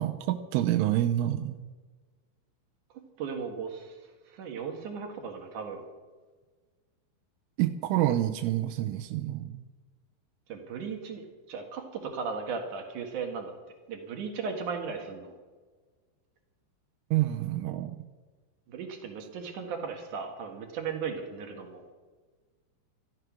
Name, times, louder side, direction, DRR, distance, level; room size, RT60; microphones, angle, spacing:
voice 1, 0.0-1.6 7.6-9.7 17.1-18.0, right 13 dB, 85° right, 6 dB, 3.3 m, -28 dB
voice 2, 3.2-4.0 4.3-5.8 10.5-13.5 13.9-15.3 18.7-21.8, right 5 dB, 60° right, 4 dB, 2.1 m, -36 dB
14.0 x 12.5 x 6.1 m, 1.4 s
omnidirectional pair, 5.6 m